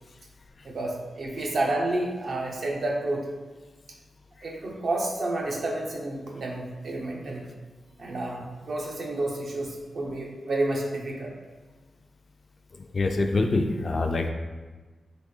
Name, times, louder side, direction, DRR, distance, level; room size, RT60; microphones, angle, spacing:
voice 1, 0.6-3.3 4.4-7.5 8.0-11.3, right 2 dB, 50° right, 0 dB, 0.7 m, -30 dB
voice 2, 12.9-14.3, left 2 dB, 40° left, 5 dB, 0.3 m, -25 dB
3.9 x 3.0 x 3.7 m, 1.3 s
wide cardioid pair, 150°, 0 cm